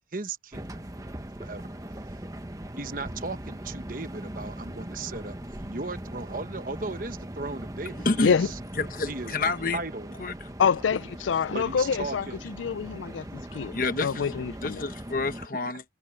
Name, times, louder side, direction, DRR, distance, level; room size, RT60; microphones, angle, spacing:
voice 1, 0.1-0.7 1.4-1.8 2.8-8.5 9.1-9.4 9.7-10.1 11.5-12.5, right 3 dB, 45° right, 1.2 m, -36 dB
sound 1, 0.5-15.5, right 1 dB, 20° right, 1.1 m, -40 dB
voice 2, 8.0-8.3 8.8-9.8 10.2-10.3 13.5-14.3 14.6-15.8, left 3 dB, 50° left, 1.0 m, -28 dB
voice 3, 10.6-13.8 14.0-14.8, left 6 dB, 85° left, 0.4 m, -26 dB
head